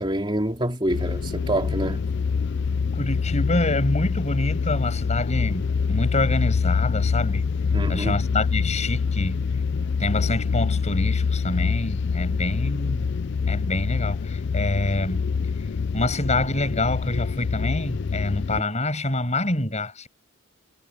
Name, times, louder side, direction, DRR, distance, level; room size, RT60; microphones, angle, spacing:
voice 1, 0.0-2.0 7.7-8.1, right 1 dB, 25° right, 3.1 m, -26 dB
sound 1, 0.9-18.6, left 5 dB, 60° left, 0.4 m, -25 dB
voice 2, 2.9-7.4 7.9-9.4 10.0-15.3 15.9-20.1, left 2 dB, 35° left, 7.7 m, -26 dB
head